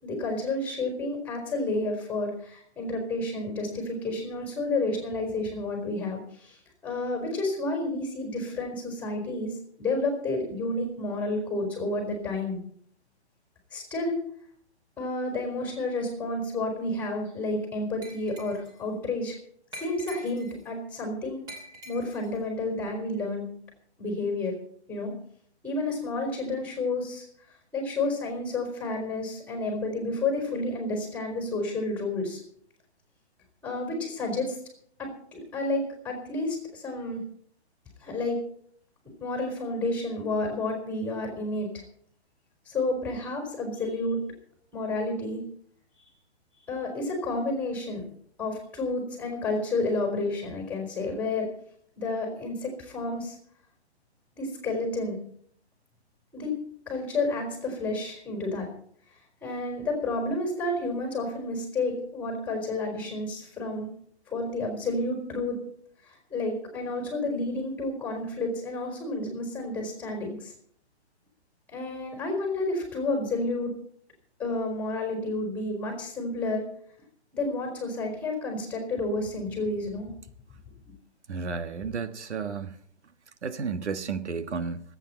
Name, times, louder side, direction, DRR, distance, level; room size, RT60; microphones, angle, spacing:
voice 1, 0.0-12.6 13.7-14.2 15.0-19.4 19.7-21.4 21.8-23.5 24.0-24.6 24.9-25.1 25.6-27.3 27.7-32.4 33.6-34.6 35.0-37.2 38.0-38.4 39.2-41.7 42.7-44.2 44.7-45.4 46.7-48.0 48.4-51.5 52.0-53.4 54.3-55.1 56.3-56.6 56.9-58.7 59.4-63.9 64.3-65.6 66.1-70.5 71.7-73.7 74.4-76.7 77.3-80.1 80.8-80.9 81.8-81.9, left 2 dB, 5° left, 4.2 m, -30 dB
Glass, 18.0-18.8 19.7-20.7 21.5-22.4, equal, 10° right, 3.1 m, -45 dB
voice 2, 81.3-82.7 83.4-84.8, right 5 dB, 85° right, 1.6 m, -32 dB
26.0 x 9.0 x 4.4 m
hypercardioid pair, 160°, 34 cm